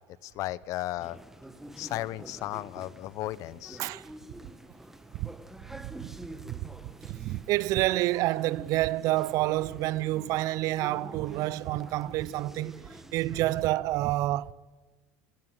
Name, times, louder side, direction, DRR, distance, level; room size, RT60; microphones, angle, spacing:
voice 1, 0.2-1.2 1.8-3.8, left 15 dB, 55° left, 0.9 m, -35 dB
sound 1, 1.0-13.7, right 1 dB, 5° right, 1.7 m, -48 dB
voice 2, 5.8-6.2 6.5-6.7 7.0-12.8 13.1-14.5, right 17 dB, 55° right, 0.8 m, -28 dB
24.5 x 12.5 x 9.1 m
hypercardioid pair, 75°, 7 cm